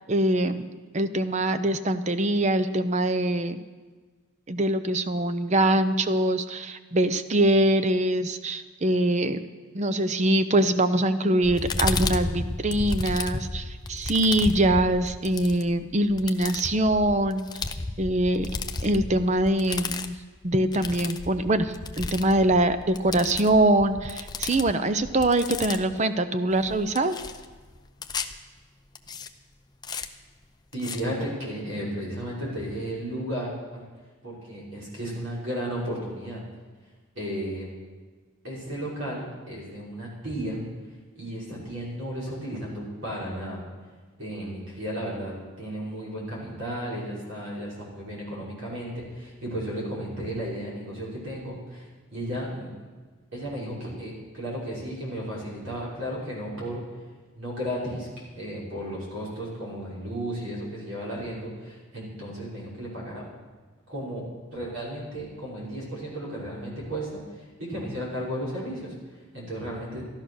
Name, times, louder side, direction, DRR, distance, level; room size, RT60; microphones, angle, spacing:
voice 1, 0.1-0.7 0.9-3.6 4.5-9.4 9.7-17.4 18.0-18.5 18.8-20.2 20.4-27.2, right 1 dB, 30° right, 11 dB, 0.6 m, -23 dB
sound 1, 11.4-26.0 26.5-28.4 29.0-29.3 29.8-30.1 30.7-31.0, left 3 dB, 20° left, 0.5 m, -33 dB
voice 2, 30.7-33.9 34.2-36.4 37.2-37.7 38.4-40.6 41.1-43.6 44.2-52.9 53.3-56.8 57.3-63.2 63.9-64.2 64.5-70.0, equal, 60° right, -6 dB, 5.7 m, -34 dB
14.5 x 11.5 x 6.4 m, 1.4 s
head